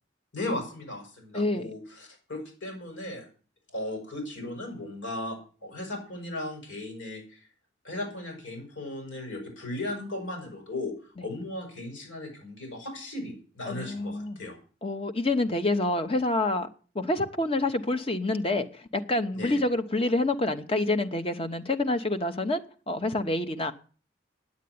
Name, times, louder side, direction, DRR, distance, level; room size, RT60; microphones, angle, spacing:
voice 1, 0.3-3.3 3.7-7.4 7.8-14.6 19.3-19.5, left 1 dB, 80° left, 6.6 m, -36 dB
voice 2, 1.3-1.7 13.7-14.4 14.8-16.7 16.9-23.7, left 2 dB, 30° left, 1.0 m, -27 dB
9.7 x 8.3 x 9.5 m
head